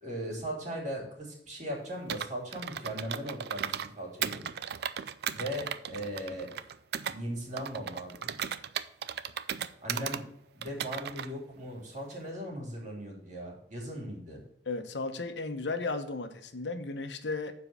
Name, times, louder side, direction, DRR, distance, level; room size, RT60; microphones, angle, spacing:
voice 1, 0.0-4.4 5.3-6.5 7.0-8.3 9.8-10.3 10.5-14.4, equal, 45° right, -2 dB, 3.1 m, -38 dB
Computer keyboard, 2.1-3.9 4.2-7.2 7.6-10.2 10.6-11.3, right 8 dB, 65° right, 0.4 m, -36 dB
voice 2, 14.7-17.5, left 3 dB, 90° left, 8 dB, 1.0 m, -35 dB
7.3 x 4.7 x 6.7 m, 0.76 s
head